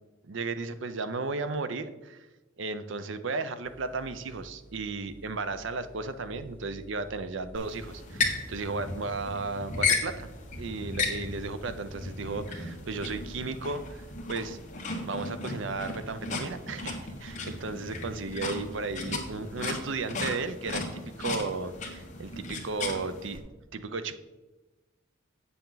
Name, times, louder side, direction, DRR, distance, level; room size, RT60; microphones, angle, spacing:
voice 1, 0.2-2.3 2.6-10.3 10.6-23.4 23.7-24.2, right 3 dB, 70° right, 11 dB, 0.6 m, -35 dB
sound 1, 3.7-16.3, right 1 dB, 10° right, 0.6 m, -52 dB
sound 2, 7.5-23.4, left 3 dB, 40° left, 1.3 m, -35 dB
8.5 x 6.9 x 3.9 m, 1.1 s
head